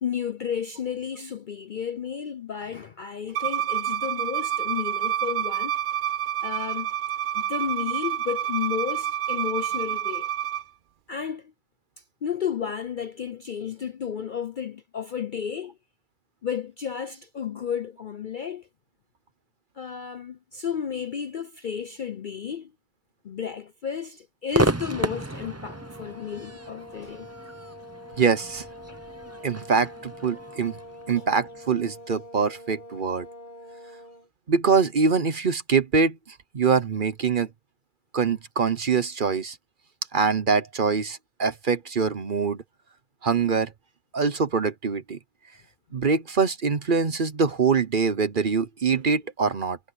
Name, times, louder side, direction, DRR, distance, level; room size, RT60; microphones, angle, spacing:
voice 1, 0.0-5.7 6.4-6.9 7.3-10.3 11.1-11.5 12.0-15.8 16.4-18.7 19.8-22.7 23.2-27.3 28.9-29.0 31.2-31.3, left 8 dB, 50° left, 0.6 m, -32 dB
Bowed string instrument, 3.3-10.6, right 11 dB, 70° right, 0.4 m, -28 dB
Crowd / Fireworks, 24.5-31.9, right 2 dB, 15° right, 0.7 m, -32 dB
sound 1, 25.6-34.3, left 1 dB, 35° left, 2.0 m, -45 dB
voice 2, 28.2-28.6 29.4-30.7 31.1-33.3 34.5-37.5 38.1-39.6 40.1-42.6 43.2-43.7 44.1-45.2 45.9-49.8, right 5 dB, 45° right, 1.0 m, -24 dB
omnidirectional pair, 1.4 m